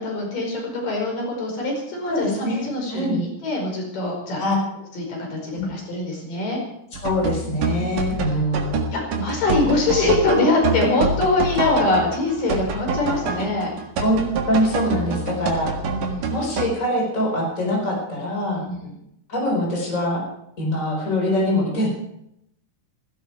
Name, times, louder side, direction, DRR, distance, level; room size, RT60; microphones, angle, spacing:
voice 1, 0.0-4.4 4.9-6.6 8.2-8.4 8.9-13.7 15.9-16.4 18.6-18.9, left 2 dB, 85° left, 0 dB, 6.9 m, -23 dB
voice 2, 2.1-2.6 2.9-3.2 4.4-4.6 5.5-5.7 7.0-8.8 11.6-11.8 14.0-15.7 16.3-18.6 19.3-20.2 20.6-21.9, left 1 dB, 20° left, -1 dB, 5.1 m, -23 dB
sound 1, 6.9-16.7, right 3 dB, 80° right, 3.4 m, -26 dB
18.5 x 16.5 x 4.7 m, 0.79 s
omnidirectional pair, 3.7 m